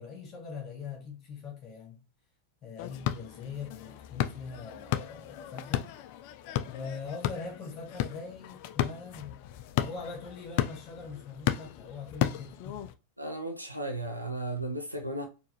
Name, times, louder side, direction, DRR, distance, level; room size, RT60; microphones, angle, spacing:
voice 1, 0.0-2.0 2.6-5.9 6.7-9.5 9.8-12.9, left 5 dB, 30° left, 1.8 m, -42 dB
sound 1, 2.8-12.9, left 12 dB, 45° left, 0.4 m, -34 dB
voice 2, 13.2-15.3, right 2 dB, 90° right, 0.6 m, -35 dB
4.5 x 2.7 x 3.0 m
figure-of-eight pair, 90°, 0 cm